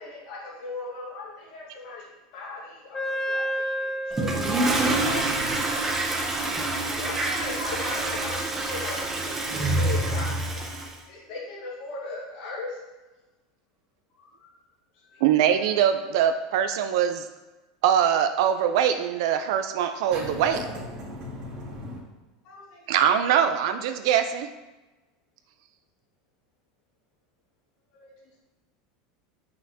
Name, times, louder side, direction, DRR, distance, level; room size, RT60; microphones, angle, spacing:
voice 1, 0.0-4.4 6.9-10.6 11.1-12.8 14.2-14.6 15.0-15.7 22.4-23.1 27.9-28.4, left 3 dB, 50° left, -8 dB, 2.1 m, -38 dB
Wind instrument woodwind instrument, 2.9-10.3, equal, 10° left, 0.3 m, -35 dB
Toilet flush, 4.1-10.9, right 2 dB, 10° right, 0.7 m, -27 dB
voice 2, 4.4-5.6 20.1-22.0, equal, 30° right, -5 dB, 1.8 m, -31 dB
voice 3, 15.2-17.3 17.8-20.6 22.9-24.5, right 9 dB, 65° right, 8 dB, 0.5 m, -22 dB
7.4 x 5.7 x 2.8 m, 1.1 s
supercardioid pair, 165°, 3 cm